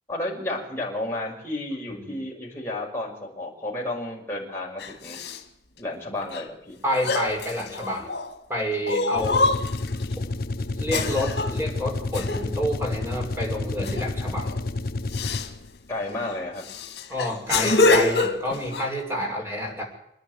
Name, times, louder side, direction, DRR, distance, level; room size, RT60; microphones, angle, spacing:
voice 1, 0.1-5.2 5.8-6.8 9.1-9.5 15.9-16.6 19.2-19.4, left 1 dB, 15° left, -3 dB, 6.1 m, -32 dB
sound 1, 4.8-5.4 6.3-6.4 6.9-8.3 8.8-10.0 10.9-11.6 12.1-12.5 13.8-14.1 14.4-14.6 15.1-15.5 16.1-16.2 16.6-18.9, left 3 dB, 70° left, 2.3 m, -25 dB
voice 2, 6.8-8.1 8.5-9.4 10.6-14.5 17.1-19.8, equal, 15° right, 1 dB, 6.1 m, -29 dB
sound 2, 9.1-15.7, left 2 dB, 55° left, 0.7 m, -30 dB
27.0 x 10.5 x 9.6 m, 0.82 s
head